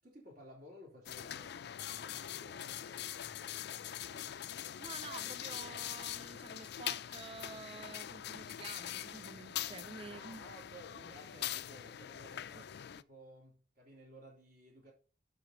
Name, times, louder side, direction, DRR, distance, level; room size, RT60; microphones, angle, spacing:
voice 1, 0.0-4.4 10.0-14.9, equal, 55° right, 3.5 m, -56 dB
sound 1, 1.1-13.0, left 11 dB, 60° left, 0.4 m, -43 dB
voice 2, 4.8-10.4 12.6-12.7, right 4 dB, 30° right, 0.4 m, -49 dB
7.5 x 5.8 x 6.7 m
head